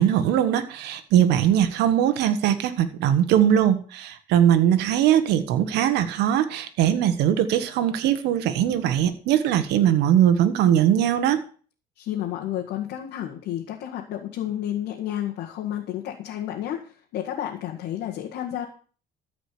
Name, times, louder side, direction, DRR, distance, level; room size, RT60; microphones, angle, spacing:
voice 1, 0.0-11.4, right 10 dB, 85° right, 10 dB, 1.4 m, -21 dB
voice 2, 12.0-18.7, left 11 dB, 85° left, -1 dB, 2.0 m, -31 dB
14.0 x 5.1 x 8.5 m, 0.42 s
cardioid pair, 110°, 17 cm